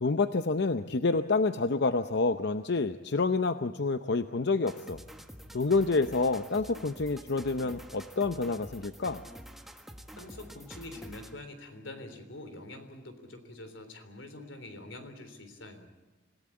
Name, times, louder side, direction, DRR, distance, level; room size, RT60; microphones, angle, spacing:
voice 1, 0.0-5.0 5.5-9.2, left 3 dB, 60° left, 10 dB, 0.7 m, -28 dB
sound 1, 4.7-11.5, equal, ahead, 1.4 m, -48 dB
voice 2, 10.2-15.9, left 2 dB, 90° left, 9 dB, 3.5 m, -45 dB
26.5 x 17.0 x 8.5 m, 1.2 s
head